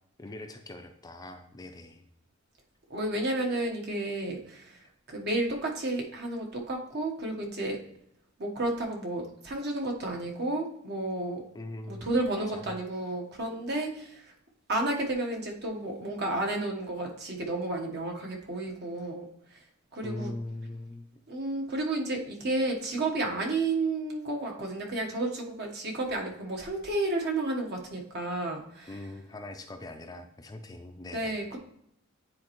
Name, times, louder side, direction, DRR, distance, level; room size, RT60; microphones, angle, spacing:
voice 1, 0.2-2.1 11.5-12.1 12.4-12.8 20.0-21.1 28.9-31.4, left 2 dB, 20° left, 5 dB, 0.5 m, -41 dB
voice 2, 2.9-7.8 8.4-11.4 11.9-14.3 14.7-19.2 19.5-19.6 19.9-20.3 21.3-28.9 31.1-31.6, right 2 dB, 55° right, 1 dB, 1.2 m, -32 dB
9.5 x 4.2 x 3.1 m, 0.73 s
head